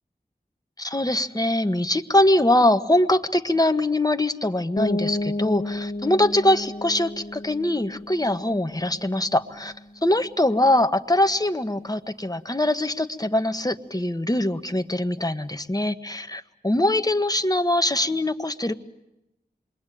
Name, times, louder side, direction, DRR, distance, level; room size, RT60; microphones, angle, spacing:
voice 1, 0.8-9.7 10.0-18.7, left 1 dB, 25° left, 8 dB, 1.4 m, -22 dB
sound 1, 4.8-10.4, left 2 dB, 65° left, 1.8 m, -32 dB
28.0 x 23.0 x 9.2 m, 0.91 s
wide cardioid pair, 45°, 16 cm